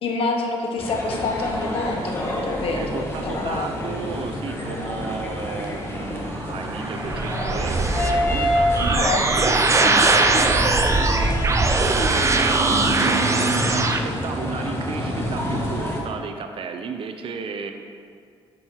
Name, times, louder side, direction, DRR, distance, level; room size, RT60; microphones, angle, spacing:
voice 1, 0.0-4.0 8.9-9.2 9.8-10.4 12.7-13.1, left 3 dB, 65° left, 2 dB, 1.1 m, -28 dB
sound 1, 0.8-16.0, left 1 dB, 25° left, 1.6 m, -27 dB
voice 2, 2.8-11.1 11.7-17.7, right 5 dB, 60° right, 6 dB, 0.7 m, -33 dB
sound 2, 6.3-14.0, right 3 dB, 30° right, 0.6 m, -21 dB
8.4 x 5.4 x 4.6 m, 2.2 s
cardioid pair, 80°, 10 cm